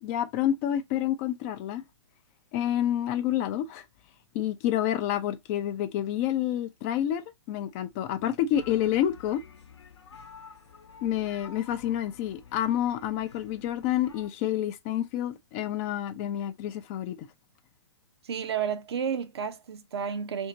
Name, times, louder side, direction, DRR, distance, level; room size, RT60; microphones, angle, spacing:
voice 1, 0.0-1.8 2.5-3.8 4.3-9.4 11.0-17.3, left 11 dB, 30° left, 0.4 m, -28 dB
sound 1, 8.5-14.3, left 6 dB, 70° left, 0.8 m, -50 dB
voice 2, 18.2-20.5, right 7 dB, 65° right, 0.6 m, -31 dB
2.8 x 2.7 x 2.6 m
figure-of-eight pair, 120°, 15 cm